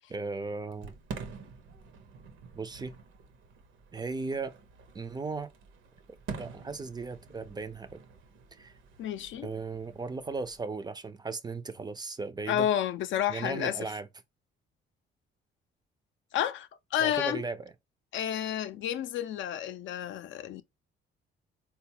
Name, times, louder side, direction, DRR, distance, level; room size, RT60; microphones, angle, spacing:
voice 1, 0.1-0.9 2.5-2.9 3.9-4.5 4.9-5.5 6.4-8.0 8.5-8.7 9.4-12.7 13.3-14.1 17.0-17.7, right 4 dB, 20° right, 0.4 m, -36 dB
Fireworks, 0.7-10.6, right 5 dB, 80° right, 0.7 m, -47 dB
voice 2, 9.0-9.5 12.5-13.8 16.3-17.4 18.1-20.6, left 10 dB, 75° left, 0.5 m, -30 dB
3.8 x 2.3 x 2.7 m
cardioid pair, 90°, 20 cm